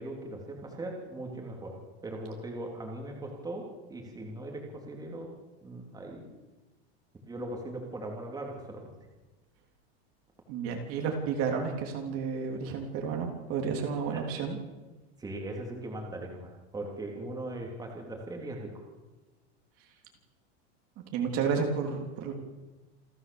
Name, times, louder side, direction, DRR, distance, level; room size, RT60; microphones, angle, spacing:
voice 1, 0.0-1.8 2.0-5.3 5.6-6.3 7.3-8.9 14.1-14.2 15.2-18.8, right 1 dB, 10° right, 0 dB, 3.4 m, -39 dB
voice 2, 10.5-14.6 21.1-22.3, right 6 dB, 45° right, 2 dB, 3.3 m, -31 dB
28.5 x 13.0 x 7.1 m, 1.2 s
supercardioid pair, 155°, 32 cm